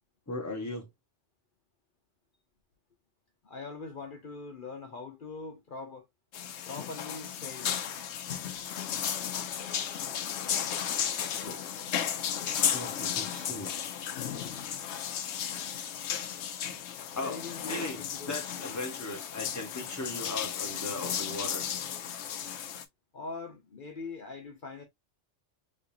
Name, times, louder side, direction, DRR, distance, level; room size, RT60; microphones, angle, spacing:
voice 1, 0.3-0.9 11.4-11.6 12.7-13.7 16.7-16.8 17.1-21.7, left 2 dB, 15° left, 1.0 m, -38 dB
voice 2, 3.4-6.1 6.6-7.8 17.2-18.3 18.6-18.7 23.1-24.8, left 3 dB, 45° left, 1.0 m, -42 dB
sound 1, 6.3-22.8, left 9 dB, 70° left, 0.9 m, -34 dB
3.7 x 3.2 x 2.6 m
omnidirectional pair, 1.3 m